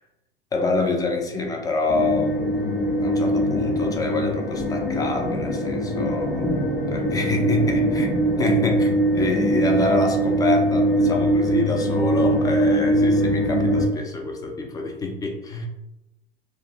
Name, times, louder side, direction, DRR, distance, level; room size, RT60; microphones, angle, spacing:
voice 1, 0.5-15.7, left 3 dB, 10° left, 2 dB, 0.4 m, -27 dB
sound 1, 1.9-13.9, right 1 dB, 40° left, 0.9 m, -22 dB
2.4 x 2.3 x 3.3 m, 0.92 s
figure-of-eight pair, 80°, 30 cm